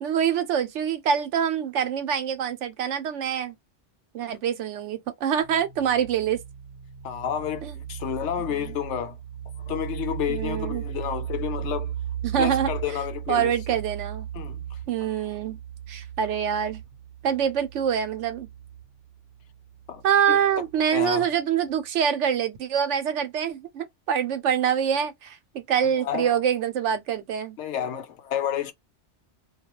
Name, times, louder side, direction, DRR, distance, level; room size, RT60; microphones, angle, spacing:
voice 1, 0.0-3.5 4.1-6.4 7.6-7.7 10.3-10.8 12.2-12.7 13.3-14.3 14.9-15.6 15.9-16.8 17.2-18.5 20.0-27.6, right 8 dB, 85° right, 1.0 m, -25 dB
sound 1, 5.4-20.8, right 10 dB, 55° right, 0.8 m, -37 dB
voice 2, 7.0-9.2 9.7-11.9 12.4-13.8 14.3-14.8 19.9-20.0 20.3-20.4 20.9-21.3 25.8-26.4 27.6-28.7, left 10 dB, 75° left, 0.9 m, -30 dB
2.3 x 2.2 x 2.9 m
omnidirectional pair, 1.2 m